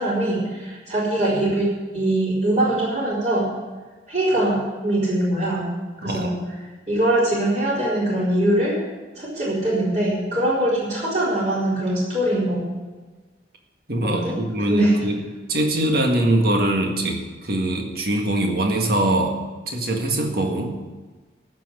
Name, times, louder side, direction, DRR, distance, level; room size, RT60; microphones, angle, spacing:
voice 1, 0.0-3.5 4.1-5.7 6.0-6.3 6.9-8.8 9.2-12.7 14.0-14.3 14.7-14.9, right 1 dB, 40° right, -7 dB, 4.1 m, -22 dB
voice 2, 6.0-6.4 13.9-19.4 19.7-20.8, right 1 dB, 55° right, 2 dB, 1.9 m, -23 dB
15.0 x 6.0 x 9.2 m, 1.3 s
head